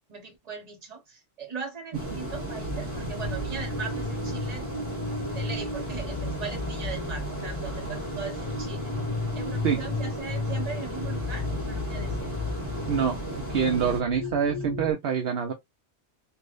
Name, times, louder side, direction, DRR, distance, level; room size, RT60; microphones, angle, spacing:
voice 1, 0.1-4.7 5.3-8.9 9.3-12.3, right 5 dB, 35° right, 1.0 m, -39 dB
sound 1, 1.9-14.0, right 1 dB, 10° right, 1.4 m, -36 dB
sound 2, 2.6-14.9, left 2 dB, 35° left, 0.6 m, -34 dB
voice 2, 12.9-13.2 13.5-15.5, right 7 dB, 65° right, 0.8 m, -25 dB
3.3 x 2.5 x 2.5 m
omnidirectional pair, 1.3 m